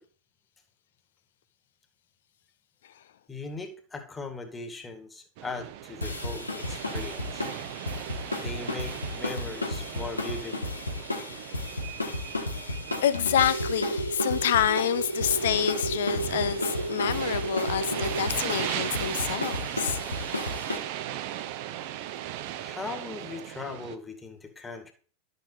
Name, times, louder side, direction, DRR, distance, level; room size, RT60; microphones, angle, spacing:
voice 1, 3.3-7.5 8.3-10.6 12.6-12.7 22.6-24.9, left 3 dB, 10° left, 1.9 m, -39 dB
sound 1, 5.4-24.0, right 12 dB, 45° right, 0.8 m, -38 dB
sound 2, 6.0-20.8, left 2 dB, 80° left, 1.6 m, -34 dB
voice 2, 13.0-20.0, left 10 dB, 60° left, 0.9 m, -27 dB
sound 3, 13.3-18.3, right 3 dB, 80° right, 0.4 m, -32 dB
11.5 x 6.9 x 4.1 m
figure-of-eight pair, 90°, 0 cm